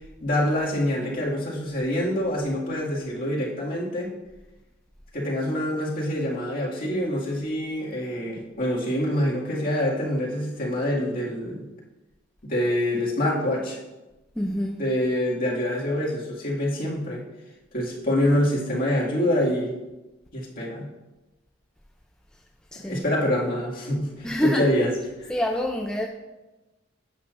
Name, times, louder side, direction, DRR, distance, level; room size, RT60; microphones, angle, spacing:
voice 1, 0.2-4.1 5.1-11.7 12.4-13.8 14.8-17.3 17.7-19.8 20.3-20.9 22.8-24.9 25.2-25.3, left 1 dB, 45° left, -5 dB, 2.1 m, -26 dB
voice 2, 14.4-14.8 22.7-23.1 24.2-24.7 25.3-26.1, left 1 dB, 5° left, 1 dB, 0.4 m, -26 dB
11.5 x 8.5 x 2.6 m, 1.1 s
head